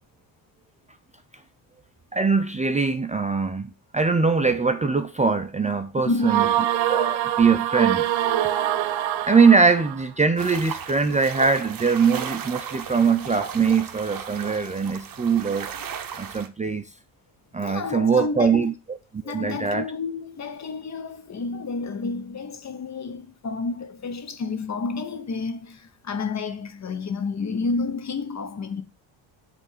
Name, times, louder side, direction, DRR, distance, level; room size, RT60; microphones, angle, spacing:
voice 1, 2.1-6.4 6.9-8.1 9.2-15.7 16.2-16.8 17.5-19.0 19.2-19.9, right 5 dB, 15° right, 0.5 m, -22 dB
voice 2, 6.0-6.4 12.9-13.1 17.6-18.7 19.2-28.8, left 4 dB, 35° left, 1.0 m, -30 dB
sound 1, 6.2-10.0, right 12 dB, 80° right, 0.9 m, -24 dB
sound 2, 10.4-16.5, right 8 dB, 45° right, 1.1 m, -36 dB
8.4 x 3.5 x 6.6 m
cardioid pair, 115°, 46 cm